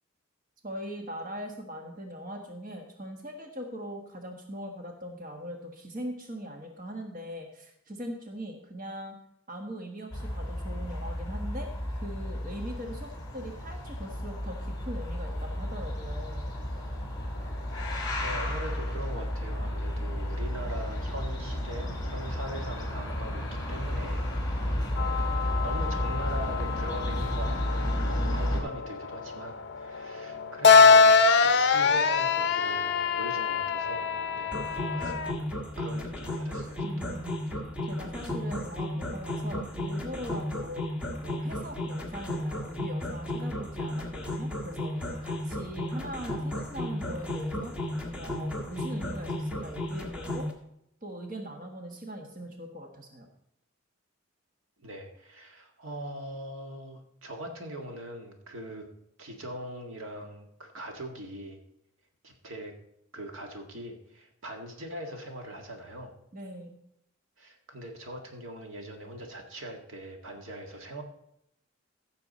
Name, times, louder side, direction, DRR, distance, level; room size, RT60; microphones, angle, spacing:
voice 1, 0.6-9.1 9.5-16.5 36.8-37.4 37.8-40.9 41.2-50.5 51.0-53.3 66.3-66.8, equal, 40° right, 2 dB, 1.5 m, -41 dB
sound 1, 10.1-28.6, left 1 dB, 20° left, 2.8 m, -32 dB
voice 2, 17.8-35.1 35.8-36.9 54.8-58.9 59.2-61.6 62.2-62.7 63.1-66.1 67.4-71.0, right 1 dB, 75° right, 3 dB, 1.8 m, -41 dB
sound 2, 25.0-35.3, left 5 dB, 55° left, 0.6 m, -24 dB
sound 3, 34.5-50.5, left 1 dB, 5° right, 1.7 m, -34 dB
15.0 x 6.9 x 4.1 m, 0.76 s
head